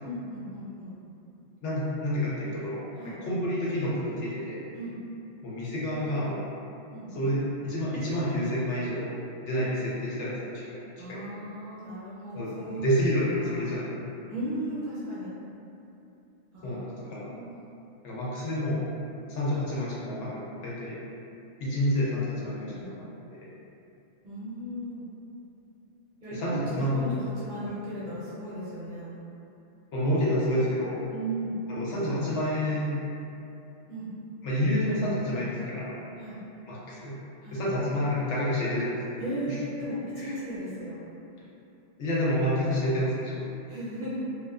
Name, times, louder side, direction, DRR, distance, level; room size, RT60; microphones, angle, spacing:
voice 1, 0.0-0.9 2.9-3.2 4.7-5.0 6.9-7.3 11.0-12.8 13.4-13.8 14.3-15.3 16.5-17.6 20.1-20.2 22.6-22.9 24.2-25.1 26.2-29.1 31.1-31.6 33.9-34.1 36.2-36.4 37.4-37.7 39.2-41.0 43.7-44.3, right 1 dB, 55° right, -11 dB, 0.6 m, -36 dB
voice 2, 1.6-2.8 3.2-4.6 5.4-6.5 7.1-9.1 9.4-10.4 10.7-11.2 12.3-13.9 16.6-17.3 18.0-18.8 19.3-21.0 21.6-23.5 26.3-27.0 29.9-31.0 31.7-33.0 34.4-35.9 36.7-37.2 37.5-39.0 39.5-39.6 40.2-40.4 42.0-43.5, equal, 75° left, -7 dB, 0.9 m, -29 dB
2.4 x 2.3 x 2.2 m, 2.8 s
omnidirectional pair, 1.3 m